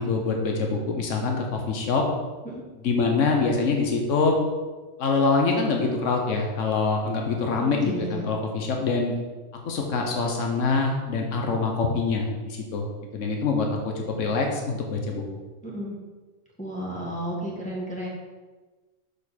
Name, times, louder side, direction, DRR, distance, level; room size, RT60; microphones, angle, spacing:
voice 1, 0.0-2.0 2.8-4.4 5.0-9.1 9.6-12.9 13.1-15.2, left 4 dB, 85° left, 2 dB, 1.3 m, -25 dB
voice 2, 7.6-8.2 15.6-15.9 16.6-18.1, right 1 dB, 5° left, -5 dB, 1.6 m, -32 dB
6.6 x 5.2 x 4.2 m, 1.3 s
omnidirectional pair, 1.3 m